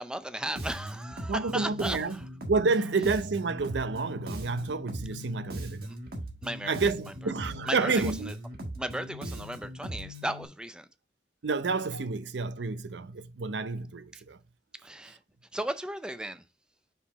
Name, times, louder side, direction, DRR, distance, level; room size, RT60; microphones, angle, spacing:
voice 1, 0.0-2.0 5.9-6.0 6.4-6.8 7.7-8.3 8.8-10.9 14.1-14.2 14.8-15.2 15.5-16.4, right 1 dB, 5° right, 0.4 m, -35 dB
Bass guitar, 0.6-10.4, equal, 60° right, 1.4 m, -40 dB
voice 2, 1.3-2.2 2.5-5.9 6.7-8.3 11.4-14.4 15.1-15.2, right 4 dB, 80° right, 0.6 m, -29 dB
5.5 x 4.9 x 4.0 m
head